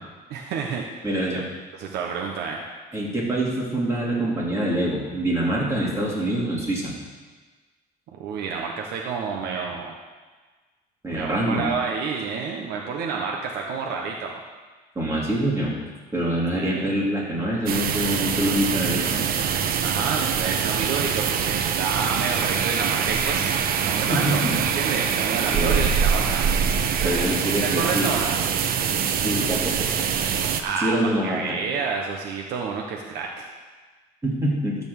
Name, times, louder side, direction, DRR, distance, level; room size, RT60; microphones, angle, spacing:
voice 1, 0.3-1.1 1.7-2.6 8.2-9.9 11.1-14.4 16.6-16.8 19.8-26.5 27.0-27.3 27.6-28.4 30.6-33.4, right 5 dB, 80° right, 0 dB, 1.1 m, -29 dB
voice 2, 1.0-1.4 2.9-6.9 11.0-11.7 14.9-15.7 16.1-19.2 24.1-24.6 25.5-25.8 27.0-28.1 29.2-30.1 30.8-31.6 34.2-34.8, right 1 dB, 15° right, -5 dB, 3.1 m, -25 dB
sound 1, 17.7-30.6, right 7 dB, 60° right, 0.8 m, -24 dB
12.5 x 4.4 x 7.2 m, 1.3 s
cardioid pair, 110°, 17 cm